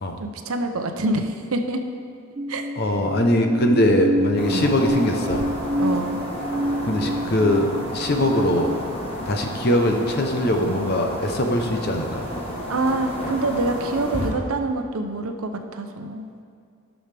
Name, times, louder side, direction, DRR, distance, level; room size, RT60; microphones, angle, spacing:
voice 1, 0.2-1.8 2.5-2.7 4.5-4.7 5.8-6.2 12.7-16.3, right 2 dB, 75° right, 6 dB, 0.7 m, -26 dB
sound 1, 2.4-8.8, equal, 25° right, 0.4 m, -27 dB
voice 2, 2.8-5.4 6.9-8.8 9.3-12.3, left 1 dB, 45° left, 3 dB, 0.8 m, -21 dB
sound 2, 4.4-14.3, equal, 25° left, 1.2 m, -32 dB
15.0 x 6.3 x 3.4 m, 2.3 s
head